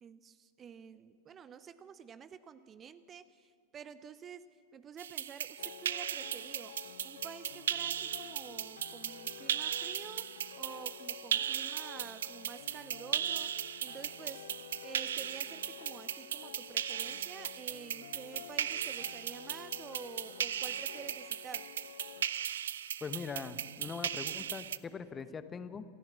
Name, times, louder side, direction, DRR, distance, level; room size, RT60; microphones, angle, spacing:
voice 1, 0.0-21.7, right 7 dB, 25° right, 14 dB, 0.7 m, -50 dB
sound 1, 5.0-24.8, right 9 dB, 65° right, 0.5 m, -38 dB
sound 2, 5.6-22.2, left 12 dB, 60° left, 0.5 m, -51 dB
voice 2, 23.0-25.8, left 5 dB, 20° left, 12 dB, 1.1 m, -41 dB
28.0 x 14.5 x 7.4 m, 2.1 s
figure-of-eight pair, 90°, 0 cm